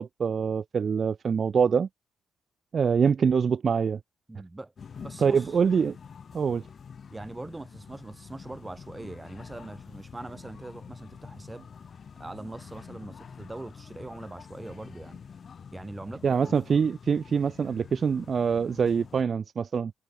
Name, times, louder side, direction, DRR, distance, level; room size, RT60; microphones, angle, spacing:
voice 1, 0.0-1.9 2.7-4.0 5.2-6.0 6.3-6.6 16.2-19.9, right 6 dB, 40° right, 1.0 m, -24 dB
voice 2, 4.3-5.6 7.1-11.7 12.2-15.2 15.7-16.4, right 2 dB, 15° right, 4.3 m, -42 dB
sound 1, 4.8-19.2, left 6 dB, 45° left, 4.2 m, -47 dB
cardioid pair, 120°, 0 cm